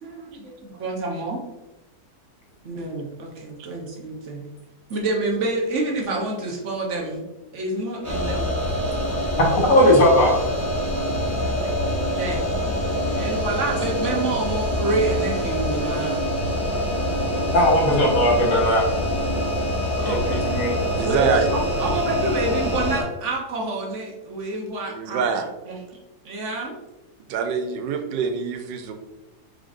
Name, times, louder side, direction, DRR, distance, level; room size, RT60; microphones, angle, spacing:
voice 1, 0.0-1.4 2.6-4.4 4.9-7.2 7.5-8.5 12.0-12.4 13.2-16.2 20.0-20.4 21.0-25.2 25.6-25.8 26.2-26.7, right 2 dB, 50° right, -1 dB, 1.0 m, -28 dB
sound 1, 8.0-23.0, equal, 20° left, 0.5 m, -25 dB
voice 2, 9.6-10.4 17.5-18.9 20.0-20.8, left 1 dB, 55° left, -2 dB, 1.5 m, -18 dB
voice 3, 20.9-21.5 21.9-22.0 24.9-25.5 27.3-28.9, right 6 dB, 85° right, 6 dB, 1.2 m, -25 dB
5.0 x 3.7 x 2.4 m, 1.0 s
omnidirectional pair, 1.8 m